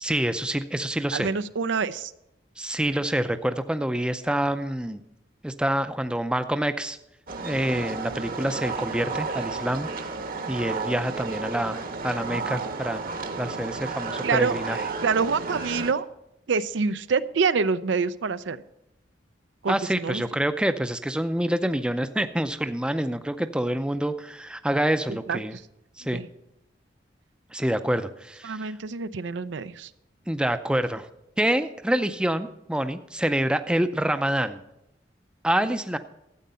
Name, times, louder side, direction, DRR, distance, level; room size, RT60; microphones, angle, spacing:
voice 1, 0.0-1.3 2.6-5.0 5.4-7.0 7.4-9.9 10.5-11.8 12.0-13.0 13.4-14.8 19.7-25.6 26.0-26.2 27.5-28.7 30.3-31.1 31.4-34.6 35.4-36.0, right 1 dB, 5° right, 10 dB, 0.5 m, -26 dB
voice 2, 1.1-2.1 14.2-14.5 15.0-16.0 16.5-18.6 19.6-20.2 25.3-25.6 26.1-26.3 28.4-29.9, right 5 dB, 80° right, 14 dB, 0.5 m, -26 dB
sound 1, 7.3-15.9, right 4 dB, 50° right, 1.1 m, -32 dB
13.0 x 8.5 x 5.5 m, 0.86 s
head